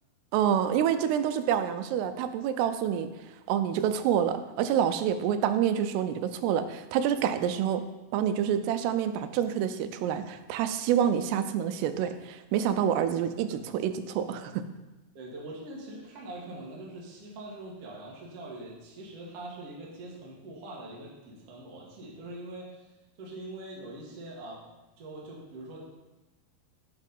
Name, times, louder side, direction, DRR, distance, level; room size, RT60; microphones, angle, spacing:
voice 1, 0.3-3.1 3.5-7.8 8.1-14.6, right 9 dB, 85° right, 9 dB, 2.6 m, -27 dB
voice 2, 15.1-22.9 23.2-24.6 25.0-25.9, right 1 dB, 55° right, -4 dB, 1.7 m, -43 dB
8.9 x 4.1 x 5.3 m, 1.1 s
omnidirectional pair, 4.7 m